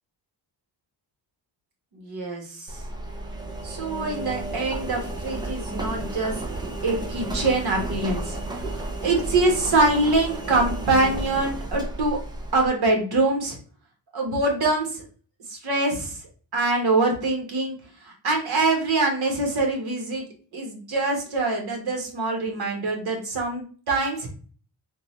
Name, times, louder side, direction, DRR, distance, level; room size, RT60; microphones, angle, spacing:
voice 1, 1.9-2.8 3.6-6.4 6.8-8.4 8.7-12.2 12.5-13.6 14.1-15.0 15.5-16.2 16.5-17.8 18.0-20.2 20.5-24.3, right 2 dB, 55° right, 1 dB, 1.2 m, -24 dB
Engine, 2.7-12.7, right 2 dB, 10° right, 0.4 m, -32 dB
3.6 x 2.3 x 3.0 m, 0.41 s
wide cardioid pair, 145°, 45 cm